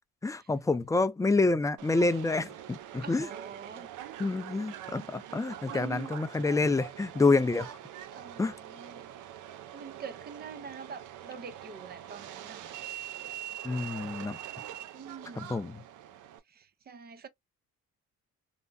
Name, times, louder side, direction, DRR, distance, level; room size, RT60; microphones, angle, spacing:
voice 1, 0.2-3.3 4.2-7.8 8.4-8.5 13.6-14.4 15.4-15.8, left 3 dB, 10° left, 0.4 m, -28 dB
Subway metro underground, 1.8-16.4, right 11 dB, 85° right, 0.6 m, -44 dB
voice 2, 3.0-3.9 4.2-4.3 5.7-6.1 8.1-9.1 9.7-12.8 14.9-15.7 16.5-17.3, right 6 dB, 30° right, 0.6 m, -45 dB
3.4 x 2.0 x 2.5 m
cardioid pair, 90°, 30 cm